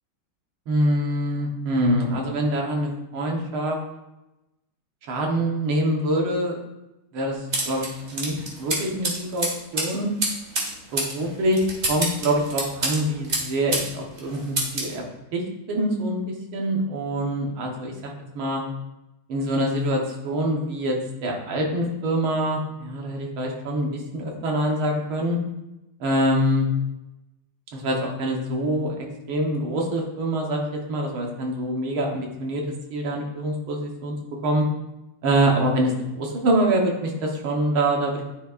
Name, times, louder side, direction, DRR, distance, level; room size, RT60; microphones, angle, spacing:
voice 1, 0.7-3.8 5.1-6.6 7.1-9.5 9.7-10.1 10.9-15.0 15.3-18.6 19.3-21.0 21.2-25.4 26.0-26.7 27.7-32.6 32.9-34.7 35.2-38.2, right 1 dB, 80° right, 0 dB, 2.1 m, -25 dB
sound 1, 7.5-13.9 14.2-14.9, right 2 dB, 35° right, 1.6 m, -28 dB
9.8 x 5.7 x 2.5 m, 0.97 s
omnidirectional pair, 2.3 m